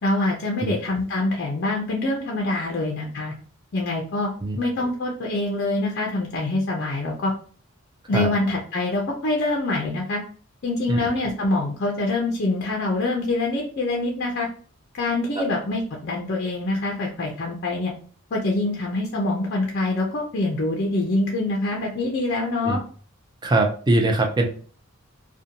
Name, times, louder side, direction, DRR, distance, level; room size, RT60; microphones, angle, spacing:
voice 1, 0.0-3.3 3.7-4.3 4.6-7.3 8.1-10.2 10.6-14.5 14.9-17.9 18.3-22.8, left 2 dB, 50° left, -1 dB, 0.5 m, -25 dB
voice 2, 23.4-24.5, right 2 dB, 20° right, 3 dB, 0.4 m, -21 dB
2.6 x 2.1 x 2.7 m, 0.43 s
head